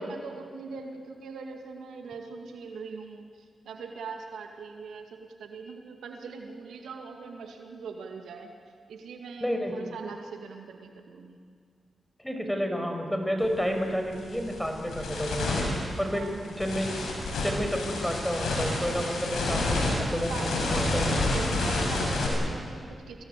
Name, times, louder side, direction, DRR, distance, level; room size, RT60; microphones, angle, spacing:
voice 1, 0.0-3.3 3.6-8.5 8.9-11.4 16.1-16.5 19.8-23.2, right 4 dB, 85° right, 3 dB, 2.2 m, -41 dB
voice 2, 9.4-9.7 12.2-15.6 16.0-16.9 17.4-20.3 20.7-21.2 22.1-22.2, equal, 5° left, 4 dB, 5.9 m, -30 dB
sound 1, 13.4-13.6 14.1-22.3, left 2 dB, 80° left, 6.5 m, -29 dB
25.5 x 18.0 x 8.4 m, 2.1 s
supercardioid pair, 45°, 0 cm